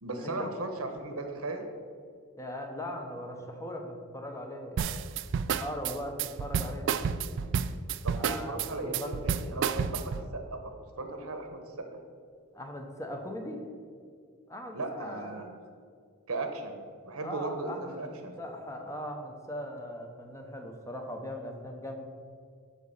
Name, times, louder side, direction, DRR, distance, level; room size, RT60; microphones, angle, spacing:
voice 1, 0.0-1.7 8.0-11.9 14.7-15.5 16.3-18.4, right 2 dB, 90° right, 5 dB, 1.1 m, -37 dB
voice 2, 2.4-4.9 5.6-7.2 8.2-9.2 12.5-13.6 14.5-15.4 17.2-18.1 18.4-22.1, equal, 15° left, 3 dB, 0.9 m, -39 dB
sound 1, 4.8-10.3, right 7 dB, 60° right, 0.3 m, -30 dB
11.5 x 4.1 x 5.5 m, 2.2 s
head